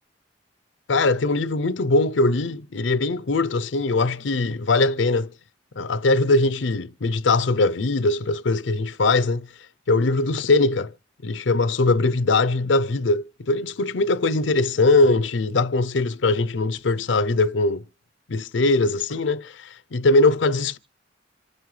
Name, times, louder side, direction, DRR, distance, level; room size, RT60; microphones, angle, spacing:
voice 1, 0.9-5.3 5.8-9.5 9.9-10.9 11.2-17.8 18.3-20.8, left 2 dB, 70° left, 0.6 m, -21 dB
27.0 x 9.4 x 3.3 m
head